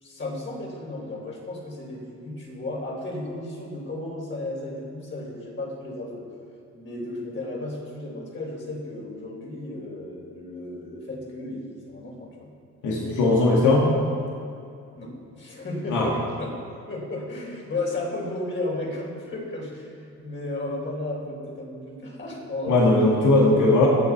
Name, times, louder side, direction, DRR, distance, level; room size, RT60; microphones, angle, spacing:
voice 1, 0.0-6.3 6.7-12.5 15.0-22.8 23.5-23.9, left 2 dB, 40° left, -2 dB, 3.8 m, -34 dB
voice 2, 12.8-13.9 15.9-16.1 22.7-23.9, left 2 dB, 75° left, -3 dB, 2.2 m, -19 dB
21.5 x 7.4 x 4.7 m, 2.5 s
cardioid pair, 90°, 30 cm